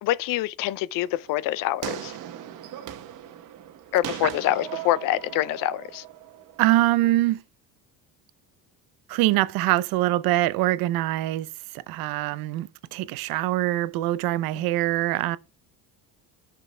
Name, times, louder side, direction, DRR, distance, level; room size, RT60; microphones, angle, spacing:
voice 1, 0.0-2.2 3.9-6.0, left 14 dB, 65° left, 0.5 m, -26 dB
sound 1, 0.9-7.1, right 11 dB, 60° right, 1.1 m, -39 dB
voice 2, 6.6-7.4 9.1-11.5 11.9-15.4, right 16 dB, 75° right, 0.6 m, -24 dB
13.5 x 6.0 x 2.2 m
cardioid pair, 150°, 36 cm